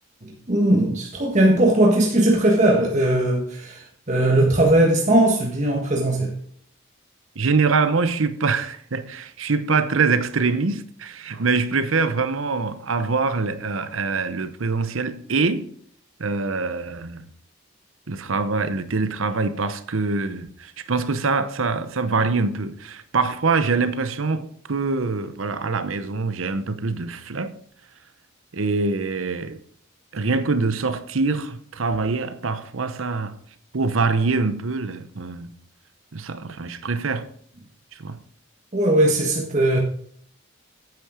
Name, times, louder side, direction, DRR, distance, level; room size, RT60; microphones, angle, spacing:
voice 1, 0.2-6.3 38.7-39.8, right 1 dB, 35° right, 1.5 m, -19 dB
voice 2, 7.4-15.7 16.2-17.3 18.1-27.5 28.5-29.6 30.1-33.4 33.7-35.5 36.1-37.3 37.9-38.2, right 4 dB, 80° right, 0.8 m, -24 dB
9.3 x 8.7 x 5.0 m
head